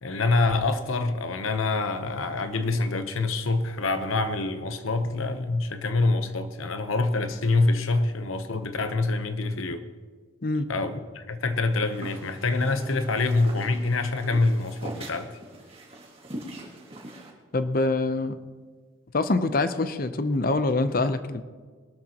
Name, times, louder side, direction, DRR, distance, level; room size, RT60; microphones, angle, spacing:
voice 1, 0.0-9.8 10.7-15.4, left 3 dB, 85° left, 9 dB, 0.9 m, -26 dB
sound 1, 11.5-17.3, right 1 dB, 30° right, 1.9 m, -42 dB
voice 2, 17.5-18.3 19.1-21.4, left 2 dB, 45° left, 11 dB, 0.7 m, -25 dB
21.5 x 12.5 x 2.9 m, 1.6 s
head